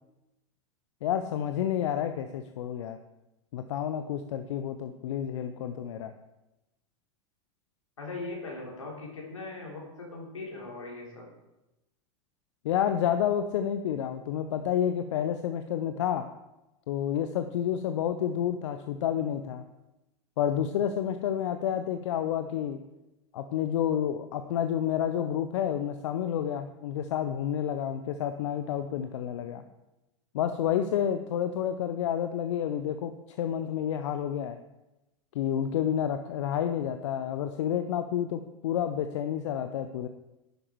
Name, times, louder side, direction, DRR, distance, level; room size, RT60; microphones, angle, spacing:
voice 1, 1.0-3.0 3.5-6.1 12.6-16.3 16.9-19.7 20.4-22.8 23.3-29.6 30.3-34.6 35.3-40.1, left 9 dB, 70° left, 8 dB, 0.7 m, -29 dB
voice 2, 8.0-11.2, left 3 dB, 90° left, -2 dB, 3.7 m, -40 dB
10.5 x 8.5 x 4.6 m, 0.96 s
hypercardioid pair, 95°, 16 cm